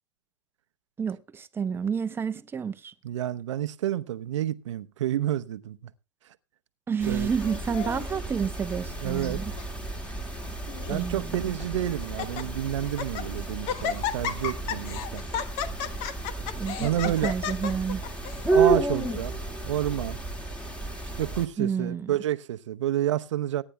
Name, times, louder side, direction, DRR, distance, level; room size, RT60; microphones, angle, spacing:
voice 1, 1.0-2.9 6.9-9.5 10.9-11.4 16.6-16.9 17.2-18.0 21.6-22.1, right 6 dB, 15° right, 0.8 m, -30 dB
voice 2, 3.0-5.8 7.1-7.3 9.0-9.4 10.9-15.2 16.8-17.3 18.5-19.3 19.6-20.2 21.2-23.6, right 12 dB, 70° right, 0.8 m, -29 dB
sound 1, 7.0-21.5, right 3 dB, 5° left, 1.9 m, -31 dB
Laughter, 7.4-8.2 8.9-9.3 9.6-9.7 10.4-11.0 11.6-11.7 12.0-12.4 12.8-13.3 13.7-18.5, left 8 dB, 40° left, 1.2 m, -33 dB
22.5 x 10.0 x 2.2 m
hypercardioid pair, 115°, 16 cm